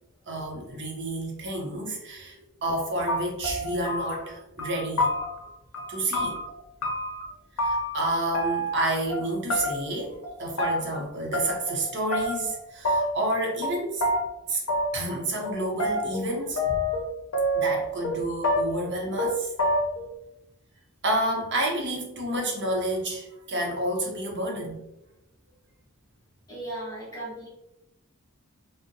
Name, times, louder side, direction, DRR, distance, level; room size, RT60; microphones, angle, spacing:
voice 1, 0.3-5.1 5.9-6.4 7.6-14.0 14.5-14.6 14.9-16.8 17.5-19.5 21.0-24.8, right 1 dB, 55° right, -1 dB, 0.7 m, -30 dB
sound 1, 2.7-2.8 3.1-4.3 4.6-5.5 5.7-7.2 7.6-8.1 8.3-9.2 9.5-10.0 10.2-11.0 11.3-11.9 12.1-12.6 12.8-13.3 13.6-13.7 14.0-14.2 14.7-15.2 15.4-17.0 17.3-18.2 18.4-18.9 19.2-19.3 19.6-20.1, equal, 90° left, 0.5 m, -27 dB
voice 2, 26.5-27.5, right 1 dB, 15° left, -6 dB, 0.7 m, -37 dB
2.6 x 2.0 x 2.6 m, 0.89 s
head